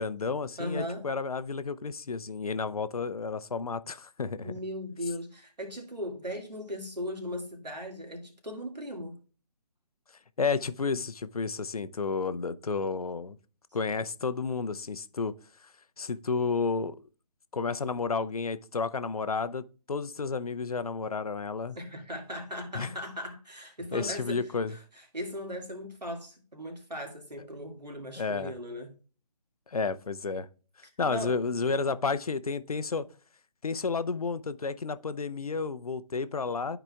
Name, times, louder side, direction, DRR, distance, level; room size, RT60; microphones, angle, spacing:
voice 1, 0.0-4.5 10.4-13.4 13.7-15.3 16.0-17.0 17.5-21.8 22.7-22.9 23.9-24.7 28.2-28.5 29.7-30.5 31.0-33.1 33.6-36.8, left 4 dB, 65° left, 0.6 m, -31 dB
voice 2, 0.6-1.0 4.4-9.2 21.8-28.9 31.1-31.4, left 1 dB, 85° right, 2.1 m, -38 dB
12.0 x 4.9 x 2.3 m
figure-of-eight pair, 145°, 21 cm